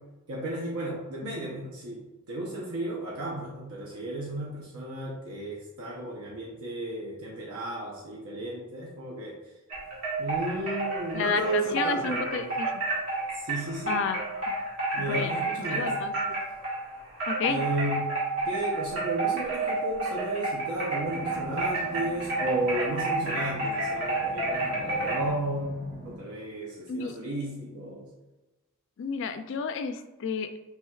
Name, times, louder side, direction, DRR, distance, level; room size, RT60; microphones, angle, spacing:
voice 1, 0.3-9.4 10.2-12.6 13.3-14.0 14.9-16.0 17.5-18.2 18.5-28.1, right 1 dB, 80° right, -3 dB, 0.7 m, -34 dB
sound 1, 9.7-16.9 17.2-25.3, right 3 dB, 60° right, 1.4 m, -30 dB
voice 2, 11.1-12.8 13.9-14.2 15.0-16.1 17.3-17.6 26.9-27.2 29.0-30.6, left 5 dB, 55° left, 9 dB, 0.3 m, -31 dB
sound 2, 21.0-26.2, equal, 35° right, 0.7 m, -44 dB
4.3 x 3.4 x 2.3 m, 1.1 s
head